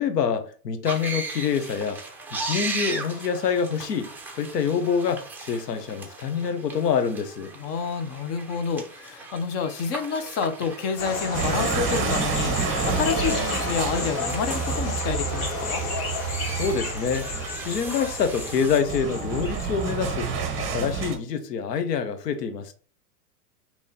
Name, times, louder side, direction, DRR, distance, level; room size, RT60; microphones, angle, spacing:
voice 1, 0.0-2.0 2.4-7.5 16.4-17.3 17.6-22.7, left 6 dB, 90° left, 0.9 m, -26 dB
sound 1, 0.8-18.8, right 3 dB, 5° right, 0.7 m, -38 dB
voice 2, 7.6-15.8, left 6 dB, 30° left, 0.6 m, -29 dB
sound 2, 11.0-20.5, left 1 dB, 50° left, 1.9 m, -31 dB
sound 3, 11.3-21.2, right 5 dB, 25° right, 1.0 m, -30 dB
5.4 x 3.0 x 2.8 m
hypercardioid pair, 120°, 47 cm